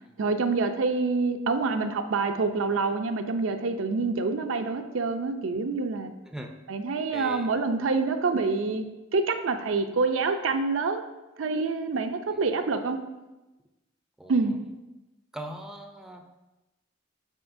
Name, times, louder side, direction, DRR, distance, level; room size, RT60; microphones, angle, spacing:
voice 1, 0.2-6.1 6.7-8.9 9.1-11.0 11.4-13.0 14.3-14.6, right 4 dB, 85° right, 7 dB, 0.5 m, -26 dB
voice 2, 7.1-7.5 14.2-14.3 15.3-16.2, right 1 dB, 5° right, 3 dB, 0.5 m, -39 dB
9.8 x 4.2 x 2.6 m, 1.1 s
head